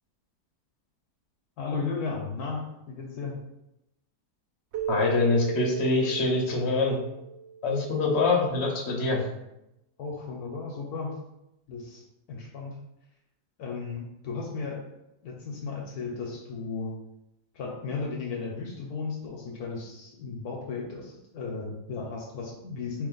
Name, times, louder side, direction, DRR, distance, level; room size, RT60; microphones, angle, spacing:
voice 1, 1.6-3.4 10.0-11.2 11.7-12.8 13.6-14.8 15.2-16.9 17.5-23.1, left 4 dB, 70° left, 0 dB, 1.2 m, -35 dB
Keyboard (musical), 4.7-7.9, right 7 dB, 70° right, 0.6 m, -35 dB
voice 2, 4.9-7.0 7.6-9.3, left 3 dB, 45° left, -1 dB, 1.1 m, -25 dB
4.2 x 3.2 x 3.9 m, 0.88 s
omnidirectional pair, 1.7 m